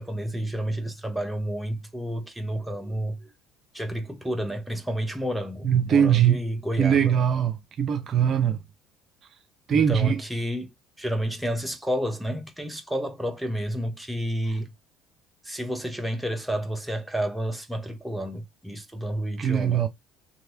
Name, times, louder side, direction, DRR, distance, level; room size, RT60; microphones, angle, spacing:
voice 1, 0.0-3.3 3.7-7.2 9.7-10.7 11.0-14.7 15.4-19.8, equal, 5° right, 0.9 m, -30 dB
voice 2, 5.6-6.4 6.8-7.5 7.8-8.6 9.7-10.1 19.4-19.9, right 8 dB, 50° right, 0.6 m, -21 dB
3.0 x 2.7 x 2.6 m
hypercardioid pair, 65°, 0 cm